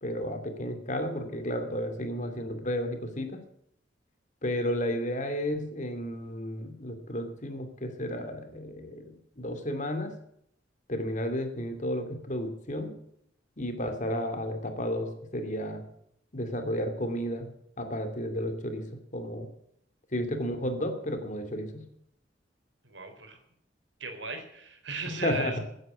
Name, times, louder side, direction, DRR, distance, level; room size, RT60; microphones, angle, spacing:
voice 1, 0.0-3.4 4.4-10.1 10.9-12.9 13.6-15.8 16.3-17.5 17.8-18.9 19.1-19.5 20.1-21.8 25.1-25.6, equal, 45° left, 7 dB, 2.7 m, -32 dB
voice 2, 22.8-23.4 24.0-25.6, right 4 dB, 75° right, 6 dB, 3.7 m, -37 dB
15.5 x 9.6 x 8.0 m, 0.72 s
head